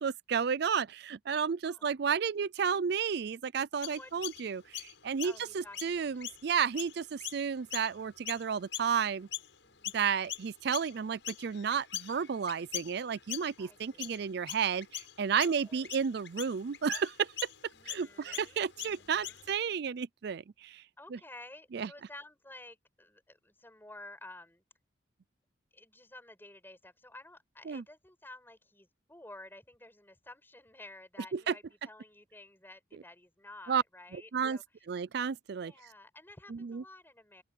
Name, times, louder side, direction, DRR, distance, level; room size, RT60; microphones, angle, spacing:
voice 1, 0.0-9.3 9.9-17.3 17.9-20.8 21.7-21.9 27.7-27.8 31.3-31.5 33.7-33.8 34.1-34.6 34.9-35.7 36.5-36.8, right 6 dB, 55° right, 0.4 m, -32 dB
voice 2, 1.6-1.9 3.8-4.1 5.2-6.3 9.6-10.1 13.6-14.3 15.4-15.9 17.7-19.5 21.0-24.6 25.7-34.6 35.6-37.4, left 2 dB, 10° left, 7.1 m, -52 dB
Chirp tweet, 3.8-9.5 9.8-19.6, left 12 dB, 75° left, 5.7 m, -42 dB
open air
head